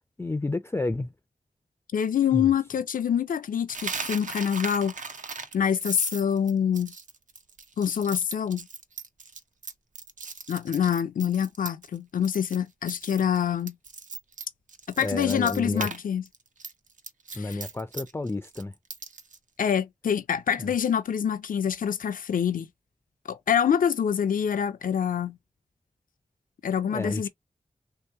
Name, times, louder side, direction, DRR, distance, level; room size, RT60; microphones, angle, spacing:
voice 1, 0.2-1.1 2.3-2.5 15.0-15.9 17.3-18.7 20.6-20.7 26.9-27.3, left 2 dB, 15° left, 0.4 m, -30 dB
voice 2, 1.9-4.9 5.5-6.9 7.8-8.7 10.5-13.7 15.0-16.2 17.3-17.6 19.6-22.7 23.3-25.4 26.6-27.3, left 8 dB, 85° left, 0.4 m, -26 dB
Coin (dropping), 3.7-12.0 12.2-12.6 12.9-16.0 16.3-19.4, right 4 dB, 70° right, 0.6 m, -38 dB
3.0 x 2.8 x 3.4 m
cardioid pair, 50°, 14 cm